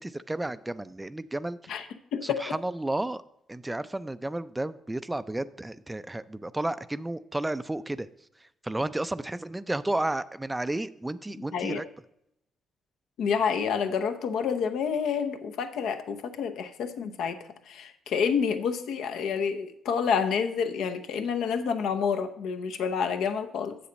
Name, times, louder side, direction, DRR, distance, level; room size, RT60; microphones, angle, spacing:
voice 1, 0.0-1.9 2.2-3.2 3.5-11.9, right 1 dB, 10° right, 15 dB, 0.3 m, -32 dB
voice 2, 2.1-2.5 11.5-11.8 13.2-23.8, left 6 dB, 80° left, 7 dB, 0.8 m, -28 dB
7.5 x 7.0 x 5.1 m, 0.79 s
cardioid pair, 90°, 0 cm